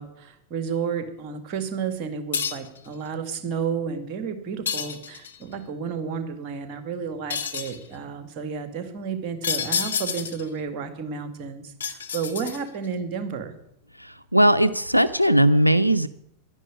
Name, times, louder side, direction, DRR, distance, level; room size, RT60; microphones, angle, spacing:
voice 1, 0.0-13.5, right 6 dB, 40° right, 8 dB, 2.3 m, -31 dB
sound 1, 2.3-2.8 4.7-5.4 7.3-7.8 9.4-10.5 11.8-12.9, left 7 dB, 70° left, 1.4 m, -29 dB
voice 2, 14.0-16.1, right 1 dB, 90° right, 14 dB, 0.5 m, -19 dB
11.5 x 11.0 x 9.9 m, 0.75 s
figure-of-eight pair, 90°, 0 cm